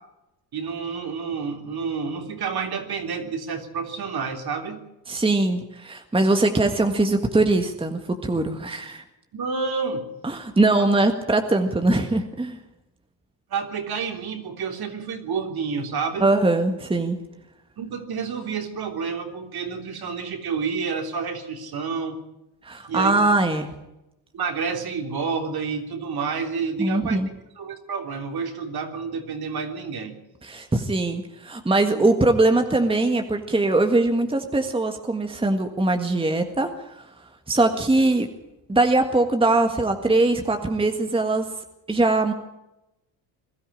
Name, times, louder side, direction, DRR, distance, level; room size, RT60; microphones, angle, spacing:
voice 1, 0.5-4.8 9.3-10.1 10.8-10.9 13.5-16.3 17.8-22.2 22.9-23.4 24.3-27.2 27.6-30.2 32.0-32.1, right 5 dB, 45° right, 5 dB, 3.4 m, -29 dB
voice 2, 5.1-9.0 10.2-12.6 16.2-17.2 22.6-23.7 26.8-27.3 30.4-37.1 37.5-38.3 38.7-41.5 41.9-42.3, right 2 dB, 10° right, 6 dB, 1.7 m, -21 dB
21.5 x 13.0 x 10.0 m, 0.93 s
cardioid pair, 100°, 50 cm